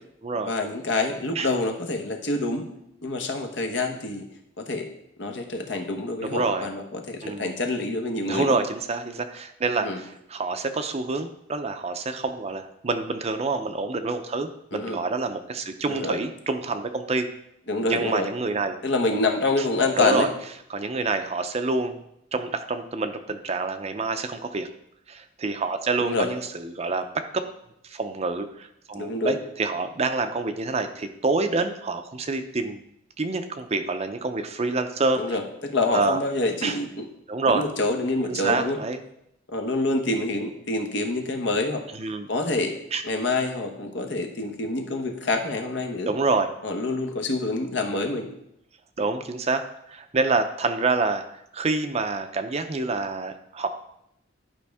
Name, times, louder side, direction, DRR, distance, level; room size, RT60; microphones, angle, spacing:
voice 1, 0.4-2.7 3.0-4.2 4.6-4.9 5.2-8.6 9.8-10.0 14.7-15.0 15.9-16.2 17.7-18.3 18.8-20.3 26.0-26.3 29.0-29.4 35.2-37.1 37.5-38.8 39.5-41.8 42.3-42.8 43.0-46.1 46.6-48.3, left 2 dB, 65° left, 4 dB, 1.1 m, -27 dB
voice 2, 6.2-6.7 7.2-7.5 8.3-17.3 17.9-18.8 20.0-20.3 20.7-22.0 22.3-24.7 25.1-27.4 27.8-32.8 33.2-35.2 35.9-36.2 36.6-36.8 37.3-37.7 38.3-39.0 42.0-42.3 42.9-43.0 46.1-46.5 49.0-51.2 51.5-53.7, right 3 dB, 35° right, 8 dB, 0.5 m, -27 dB
11.0 x 5.2 x 3.5 m, 0.79 s
head